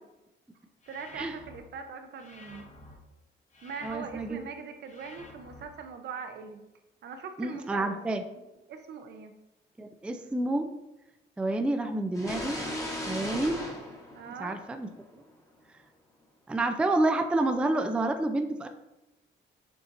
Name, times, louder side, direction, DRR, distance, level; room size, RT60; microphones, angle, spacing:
sound 1, 0.8-1.6 2.2-3.0 3.5-4.3 4.9-5.6, left 2 dB, 40° left, 0.8 m, -50 dB
voice 1, 0.9-2.7 3.6-6.6 7.0-7.9 8.7-9.3 14.1-14.6, right 5 dB, 60° right, 7 dB, 0.6 m, -41 dB
voice 2, 3.8-4.4 7.4-8.2 9.8-10.7 11.4-12.6 13.1-13.6 14.3-14.9 15.1-15.2 16.5-18.7, right 2 dB, 5° right, 6 dB, 0.3 m, -29 dB
sound 2, 12.1-15.0, left 1 dB, 15° left, 1.0 m, -36 dB
6.8 x 2.7 x 2.5 m, 0.98 s
cardioid pair, 90°, 20 cm